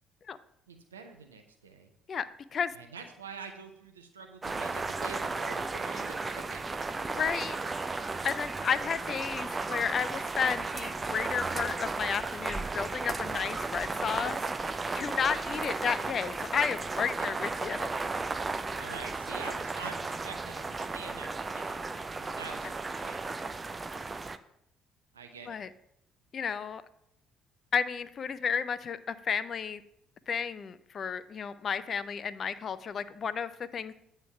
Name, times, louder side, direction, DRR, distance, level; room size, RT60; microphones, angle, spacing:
voice 1, 0.7-1.9 2.7-6.9 17.2-17.4 18.7-21.8 22.2-23.2 25.1-25.6, right 5 dB, 85° right, 5 dB, 0.7 m, -46 dB
sound 1, 4.4-24.4, right 3 dB, 25° right, 0.4 m, -34 dB
voice 2, 7.1-7.6 8.2-14.4 14.9-17.9 25.5-25.7 26.3-26.8 27.7-29.8 30.3-33.9, left 7 dB, 45° left, 14 dB, 0.4 m, -32 dB
8.9 x 3.3 x 5.9 m, 0.76 s
figure-of-eight pair, 50°, 0 cm